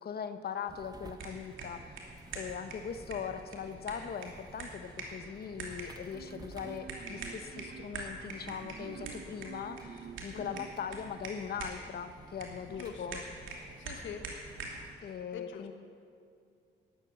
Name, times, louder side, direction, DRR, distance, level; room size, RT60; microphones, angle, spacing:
voice 1, 0.0-2.1 2.3-13.2 15.0-15.7, left 7 dB, 50° left, 10 dB, 0.9 m, -40 dB
sound 1, 0.7-14.9, right 2 dB, 20° right, 1.1 m, -53 dB
sound 2, 1.0-14.9, right 3 dB, 80° right, 2.7 m, -46 dB
Marimba xylophone, 6.1-11.3, right 6 dB, 60° right, 0.9 m, -49 dB
voice 2, 10.3-10.7 12.8-13.2 13.8-14.2 15.3-15.7, left 7 dB, 80° left, 6 dB, 1.3 m, -44 dB
13.0 x 11.0 x 7.7 m, 2.4 s
cardioid pair, 90°, 20 cm